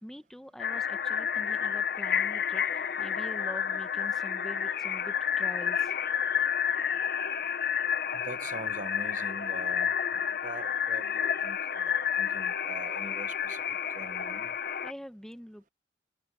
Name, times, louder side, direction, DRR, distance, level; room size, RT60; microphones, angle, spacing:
voice 1, 0.0-6.0 14.8-15.7, equal, 5° left, 1.0 m, -45 dB
sound 1, 0.6-14.9, left 8 dB, 50° left, 0.8 m, -30 dB
voice 2, 8.1-9.9 10.4-13.6 13.9-14.5, right 2 dB, 45° right, 0.9 m, -43 dB
head